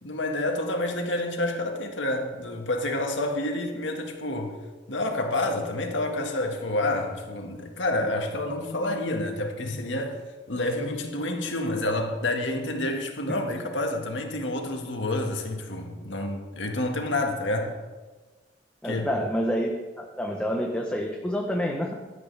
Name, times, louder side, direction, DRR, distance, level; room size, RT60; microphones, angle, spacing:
voice 1, 0.0-4.5 4.9-10.2 10.5-17.7 18.8-19.1, left 1 dB, 80° left, 2 dB, 1.8 m, -28 dB
voice 2, 18.8-21.9, equal, 5° left, 0 dB, 1.0 m, -28 dB
16.0 x 12.0 x 3.5 m, 1.3 s
head